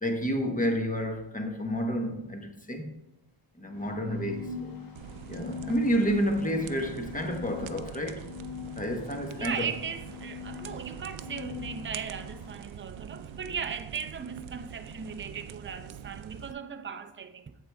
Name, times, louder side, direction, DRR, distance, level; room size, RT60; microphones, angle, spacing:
voice 1, 0.0-2.9 3.6-4.5 5.3-8.3 8.8-9.7, equal, 15° left, 1.2 m, -30 dB
sound 1, 3.6-12.7, left 8 dB, 45° left, 1.5 m, -44 dB
voice 2, 4.4-4.9 9.3-17.5, right 6 dB, 25° right, 0.5 m, -38 dB
sound 2, 4.9-16.5, right 9 dB, 80° right, 0.6 m, -44 dB
8.6 x 7.7 x 3.5 m
wide cardioid pair, 115°, 47 cm